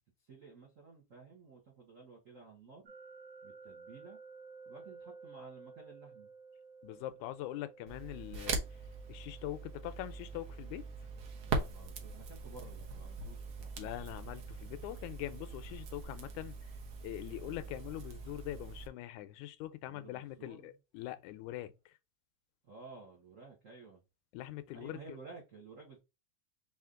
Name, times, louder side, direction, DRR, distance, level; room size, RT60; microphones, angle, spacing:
voice 1, 0.2-2.9 3.4-4.2 4.6-6.3 11.4-13.9 17.3-17.7 19.9-20.7 22.6-24.0 24.7-26.0, right 4 dB, 85° right, 0.6 m, -54 dB
sound 1, 2.9-15.8, right 4 dB, 45° right, 1.3 m, -56 dB
voice 2, 6.8-8.6 9.1-10.9 13.8-16.6 17.0-22.0 24.3-25.0, left 14 dB, 85° left, 1.9 m, -43 dB
Crackle, 7.9-18.9, right 4 dB, 60° right, 1.5 m, -42 dB
5.0 x 2.7 x 3.6 m
omnidirectional pair, 3.4 m